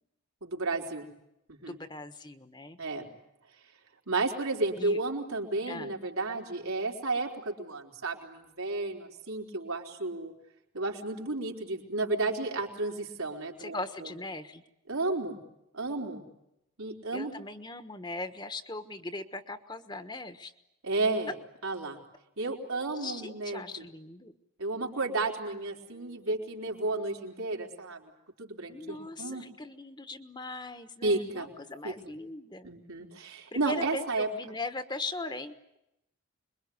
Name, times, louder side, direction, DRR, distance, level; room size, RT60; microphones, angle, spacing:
voice 1, 0.4-1.1 1.5-1.8 2.8-3.1 4.1-10.3 10.7-13.8 14.9-15.4 15.7-16.2 16.8-17.3 20.8-21.3 21.6-22.0 22.4-23.6 24.6-28.0 28.4-29.4 31.0-31.5 31.8-32.1 32.6-34.3, right 2 dB, 85° right, 2 dB, 4.4 m, -32 dB
voice 2, 1.7-2.8 4.8-5.0 5.7-6.0 13.6-14.6 17.1-20.5 22.9-24.3 28.7-32.7 33.5-35.6, left 2 dB, 20° left, 10 dB, 1.2 m, -39 dB
26.5 x 22.5 x 9.5 m, 0.85 s
head